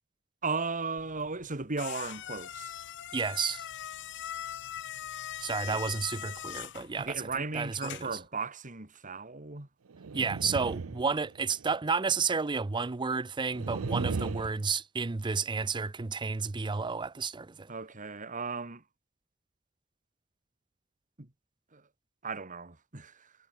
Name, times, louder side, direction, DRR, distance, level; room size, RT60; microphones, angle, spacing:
voice 1, 0.4-2.7 5.7-5.8 7.0-9.7 17.7-18.8 21.2-21.3 21.7-21.8 22.2-23.3, right 4 dB, 40° right, 2.1 m, -36 dB
sound 1, 1.0-8.3, left 11 dB, 55° left, 0.8 m, -42 dB
voice 2, 3.1-3.6 5.4-7.2 7.5-8.1 10.1-17.7, right 5 dB, 20° right, 0.5 m, -31 dB
sound 2, 9.9-11.7 13.5-14.5, right 4 dB, 75° right, 0.6 m, -35 dB
head